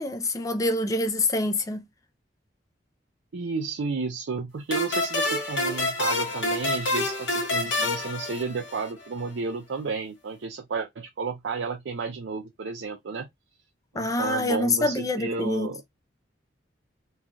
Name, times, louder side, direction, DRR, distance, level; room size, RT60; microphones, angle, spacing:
voice 1, 0.0-1.8 13.9-15.7, left 2 dB, 20° left, 0.4 m, -26 dB
voice 2, 3.3-13.3 13.9-15.8, right 4 dB, 75° right, 0.5 m, -32 dB
sound 1, 4.7-9.1, left 2 dB, 80° left, 1.1 m, -27 dB
3.1 x 2.3 x 2.5 m
head